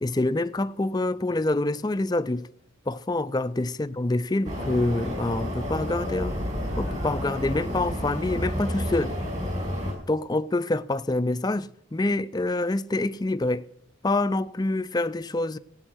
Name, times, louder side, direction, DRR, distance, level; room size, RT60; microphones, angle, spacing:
voice 1, 0.0-2.5 2.9-6.4 6.8-9.2 10.1-13.7 14.0-15.6, left 2 dB, 20° left, 0.4 m, -26 dB
sound 1, 4.4-9.9, equal, 35° right, 5.8 m, -30 dB
17.0 x 9.0 x 6.2 m
head